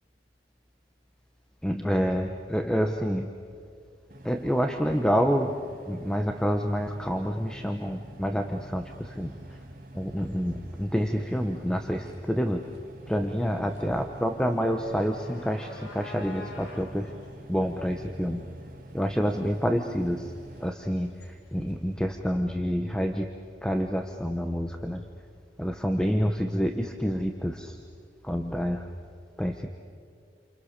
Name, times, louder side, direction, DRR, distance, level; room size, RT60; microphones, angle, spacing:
voice 1, 1.6-3.3 4.2-9.3 9.9-12.7 13.1-17.1 17.5-18.5 18.9-20.3 20.6-23.3 23.6-25.1 25.6-27.8 28.2-28.9 29.4-29.7, equal, 5° left, 5 dB, 1.0 m, -28 dB
sound 1, 4.1-20.7, right 1 dB, 55° right, 2.1 m, -47 dB
sound 2, 8.8-22.0, left 2 dB, 80° left, 4.5 m, -50 dB
29.0 x 28.0 x 6.7 m, 2.2 s
head